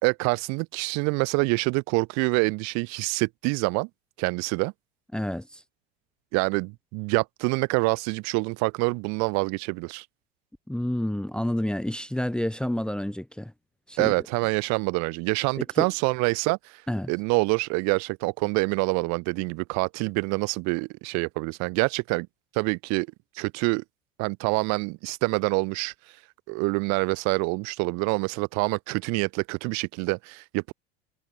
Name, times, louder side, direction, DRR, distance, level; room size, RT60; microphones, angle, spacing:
voice 1, 0.0-3.9 4.2-4.7 6.3-10.1 14.0-16.8 17.1-22.3 22.5-23.1 23.4-23.8 24.2-25.9 26.5-30.7, right 30 dB, 60° right, 3.6 m, -26 dB
voice 2, 5.1-5.6 10.7-13.5 13.9-14.1 15.8-15.9 16.9-17.1, left 1 dB, 5° left, 1.2 m, -29 dB
hypercardioid pair, 85°, 30 cm